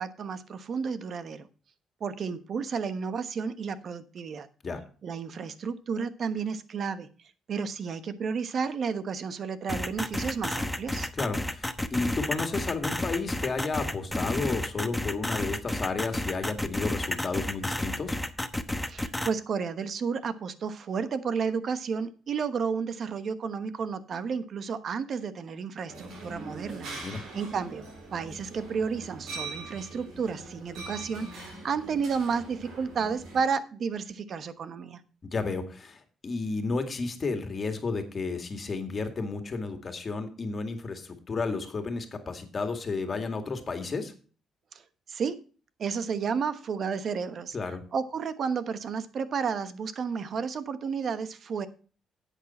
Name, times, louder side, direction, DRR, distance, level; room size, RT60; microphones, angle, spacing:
voice 1, 0.0-1.5 2.0-4.5 5.0-7.1 7.5-11.1 18.9-27.8 28.1-35.0 45.1-45.4 45.8-47.6 47.9-51.7, right 6 dB, 55° right, 12 dB, 1.1 m, -32 dB
sound 1, 9.7-19.3, left 1 dB, 5° left, 1.0 m, -31 dB
voice 2, 11.1-18.2 27.0-27.2 35.2-44.1 47.5-47.8, left 4 dB, 40° left, 7 dB, 2.1 m, -32 dB
sound 2, 25.9-33.4, right 2 dB, 80° right, 4.6 m, -42 dB
10.0 x 8.4 x 4.3 m, 0.38 s
cardioid pair, 90°, 0 cm